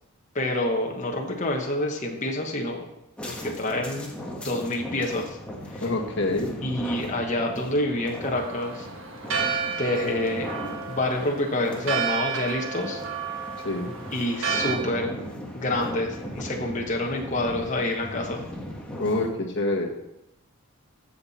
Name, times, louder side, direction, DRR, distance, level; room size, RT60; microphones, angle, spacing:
voice 1, 0.3-2.9 3.3-4.1 4.4-5.4 5.7-5.8 6.6-8.9 9.7-10.5 10.9-13.0 14.1-15.2 15.5-18.4, left 1 dB, 35° left, 0 dB, 1.2 m, -27 dB
sound 1, 3.2-19.3, equal, 5° left, 1.3 m, -38 dB
voice 2, 5.8-6.5 13.6-13.9 19.0-19.9, left 2 dB, 55° left, 0 dB, 1.6 m, -26 dB
Church bell, 8.3-14.8, right 6 dB, 60° right, 1.4 m, -31 dB
15.0 x 5.8 x 4.2 m, 0.86 s
head